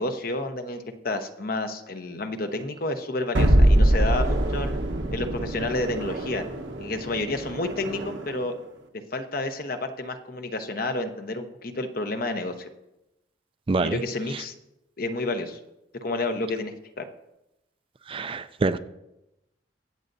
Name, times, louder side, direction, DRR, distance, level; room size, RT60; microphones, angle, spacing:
voice 1, 0.0-4.8 5.1-6.4 6.8-8.5 9.1-12.7 13.8-14.5 15.0-15.6 16.0-17.1, left 2 dB, 50° left, 7 dB, 0.9 m, -30 dB
sound 1, 3.3-8.4, right 1 dB, 90° right, 1.2 m, -23 dB
voice 2, 13.7-14.0 14.3-14.4 18.1-18.8, right 3 dB, 30° right, 11 dB, 0.4 m, -26 dB
22.5 x 7.8 x 2.7 m, 0.91 s
head